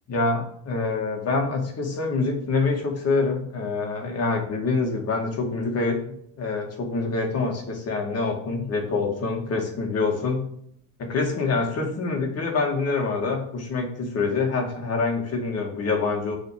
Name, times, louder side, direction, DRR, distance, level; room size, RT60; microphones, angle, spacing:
voice 1, 0.1-10.5 11.0-16.4, left 3 dB, 40° left, 1 dB, 2.4 m, -26 dB
6.9 x 4.3 x 6.1 m, 0.67 s
cardioid pair, 120°, 36 cm